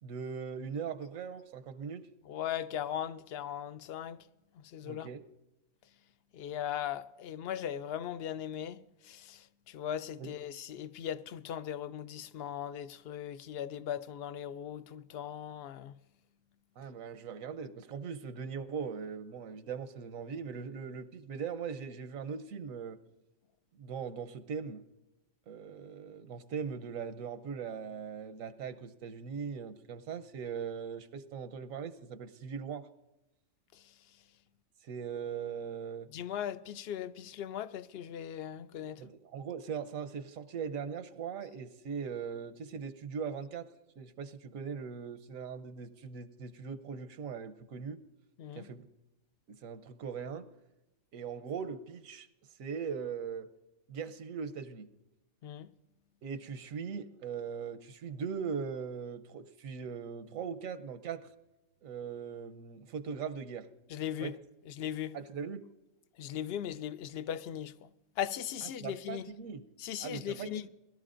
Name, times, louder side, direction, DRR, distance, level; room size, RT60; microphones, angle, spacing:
voice 1, 0.0-2.1 4.8-5.2 10.2-10.3 16.8-23.0 23.7-24.8 25.5-32.9 34.8-36.1 39.0-43.7 44.0-48.0 48.5-48.9 49.5-50.5 51.1-52.3 52.6-53.5 53.9-54.9 56.2-61.3 61.8-63.7 64.2-64.4 65.1-65.7 68.6-69.6 70.0-70.7, right 6 dB, 90° right, 1.2 m, -40 dB
voice 2, 2.3-4.2 4.6-5.1 6.3-15.9 33.7-33.8 36.1-39.0 48.4-48.7 55.4-55.7 63.9-64.3 64.7-65.2 66.2-67.9 68.2-69.3 69.8-70.6, left 10 dB, 65° left, 0.6 m, -38 dB
21.5 x 12.5 x 2.5 m
omnidirectional pair, 1.4 m